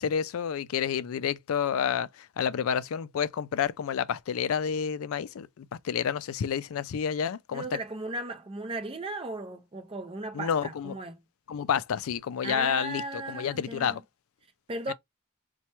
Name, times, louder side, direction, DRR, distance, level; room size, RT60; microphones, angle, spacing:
voice 1, 0.0-2.1 2.4-7.6 10.3-11.0 11.5-14.0 14.9-15.0, left 7 dB, 75° left, 0.4 m, -29 dB
voice 2, 7.5-11.1 12.4-14.0 14.7-14.9, right 2 dB, 25° right, 0.6 m, -36 dB
2.9 x 2.3 x 4.2 m
head